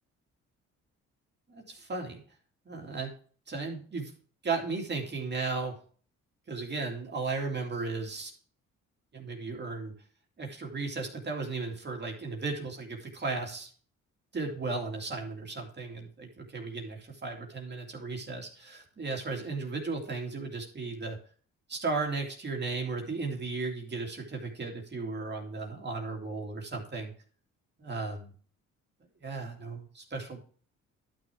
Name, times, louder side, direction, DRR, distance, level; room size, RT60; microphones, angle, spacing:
voice 1, 1.5-2.2 2.7-3.1 3.5-4.1 4.4-5.8 6.5-8.3 9.1-9.9 10.4-13.7 14.3-21.2 21.7-27.1 27.8-28.3 29.2-30.4, right 3 dB, 35° right, 1 dB, 2.3 m, -35 dB
11.5 x 6.4 x 3.5 m, 0.43 s
cardioid pair, 90°, 30 cm